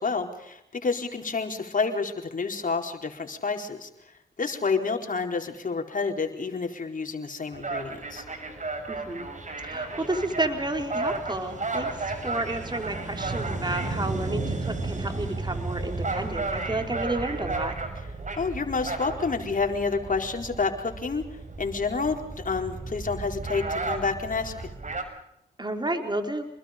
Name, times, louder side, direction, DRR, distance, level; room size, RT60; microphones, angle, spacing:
voice 1, 0.0-3.9 4.4-8.2 18.4-21.2 21.6-24.5, left 4 dB, 50° left, 4 dB, 4.5 m, -29 dB
sound 1, 7.5-25.0, right 3 dB, 45° right, 6.2 m, -33 dB
voice 2, 8.9-9.3 9.6-17.7 25.6-26.5, right 1 dB, 25° right, 5 dB, 4.6 m, -31 dB
28.5 x 21.5 x 5.3 m, 0.80 s
cardioid pair, 50°, 17 cm